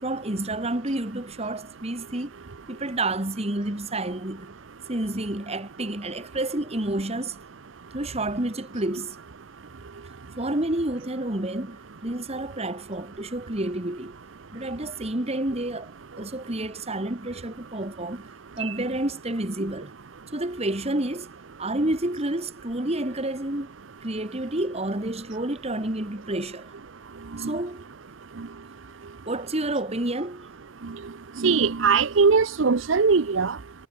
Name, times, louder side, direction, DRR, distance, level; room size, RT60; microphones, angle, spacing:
voice 1, 0.0-2.3 2.7-4.5 4.9-7.4 7.9-9.2 10.4-14.2 14.5-18.3 18.6-19.9 20.3-21.3 21.6-23.7 24.0-26.7 27.4-27.9 29.3-30.5, right 1 dB, 35° right, 2.5 m, -29 dB
voice 2, 31.4-33.6, right 5 dB, 80° right, 0.7 m, -20 dB
head